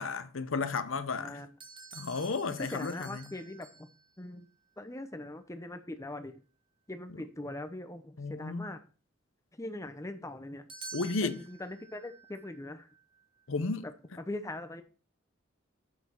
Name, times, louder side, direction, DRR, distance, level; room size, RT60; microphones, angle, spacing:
voice 1, 0.0-1.4 1.9-3.3 8.2-8.7 10.9-11.4 13.5-13.9, left 4 dB, 75° left, 0.7 m, -33 dB
voice 2, 1.2-1.5 2.6-3.9 4.2-4.5 4.8-6.4 6.9-8.8 9.5-10.6 11.2-12.9 13.8-14.8, left 1 dB, 15° left, 0.7 m, -41 dB
sound 1, 1.6-4.3 10.7-13.5, right 4 dB, 25° right, 1.8 m, -50 dB
7.5 x 6.1 x 4.4 m
head